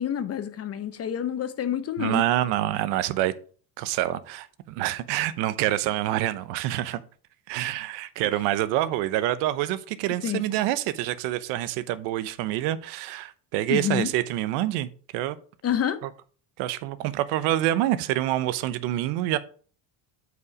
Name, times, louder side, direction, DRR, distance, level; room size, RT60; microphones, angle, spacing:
voice 1, 0.0-2.2 10.2-10.4 13.7-14.1 15.6-16.0, left 9 dB, 35° left, 0.8 m, -28 dB
voice 2, 2.0-3.3 3.8-7.0 7.5-15.4 16.6-19.4, right 14 dB, 75° right, 0.9 m, -26 dB
8.1 x 5.0 x 4.8 m
cardioid pair, 120°, 41 cm